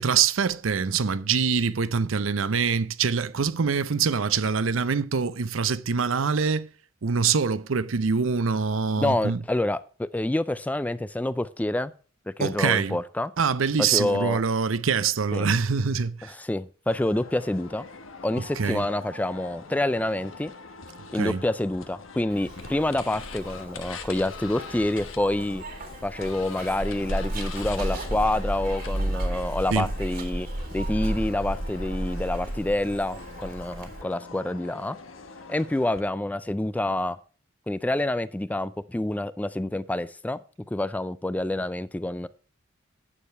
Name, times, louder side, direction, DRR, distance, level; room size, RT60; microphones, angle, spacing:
voice 1, 0.0-6.7 7.0-9.4 12.4-13.0 13.4-16.3 18.6-18.8 21.1-21.4 29.7-29.9, right 5 dB, 85° right, 0.6 m, -24 dB
voice 2, 9.0-11.9 12.4-13.3 13.8-14.4 15.3-15.5 16.2-17.9 18.2-20.5 21.1-25.6 26.0-35.0 35.5-37.2 37.7-40.4 40.7-42.3, left 1 dB, 10° left, 0.4 m, -27 dB
sound 1, 16.9-36.0, left 4 dB, 85° left, 1.3 m, -43 dB
Zipper (clothing), 22.3-34.0, right 1 dB, 50° right, 1.9 m, -33 dB
9.9 x 6.7 x 5.6 m
head